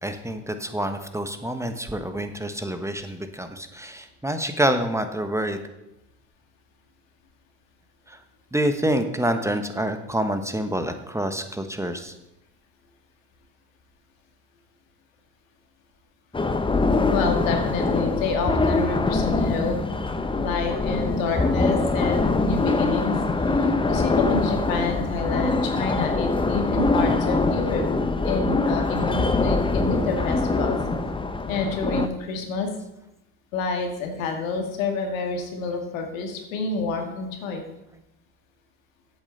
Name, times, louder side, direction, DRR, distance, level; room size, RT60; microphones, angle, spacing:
voice 1, 0.0-5.6 8.1-8.2 8.5-12.1, right 1 dB, 5° right, 8 dB, 1.1 m, -27 dB
sound 1, 16.3-32.1, left 3 dB, 15° left, 0.8 m, -23 dB
voice 2, 17.1-19.8 20.4-23.2 23.5-27.8 28.2-30.8 31.5-32.7 33.5-37.6, left 4 dB, 90° left, 4 dB, 2.1 m, -28 dB
8.3 x 6.3 x 7.8 m, 0.89 s
supercardioid pair, 80°, 39 cm